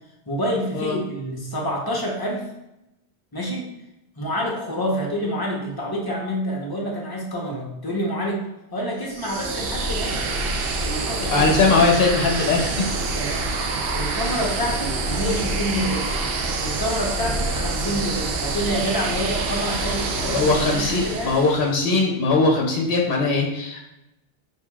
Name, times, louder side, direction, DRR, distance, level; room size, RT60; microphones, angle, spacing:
voice 1, 0.3-2.5 3.3-3.7 4.2-10.4 10.8-11.6 13.1-16.2 16.6-21.4, equal, 25° left, -2 dB, 0.8 m, -28 dB
sound 1, 9.1-21.8, right 3 dB, 70° right, 0.7 m, -26 dB
voice 2, 11.3-12.9 20.3-23.8, left 3 dB, 65° left, 0 dB, 0.9 m, -20 dB
6.5 x 2.8 x 2.3 m, 0.90 s
omnidirectional pair, 1.1 m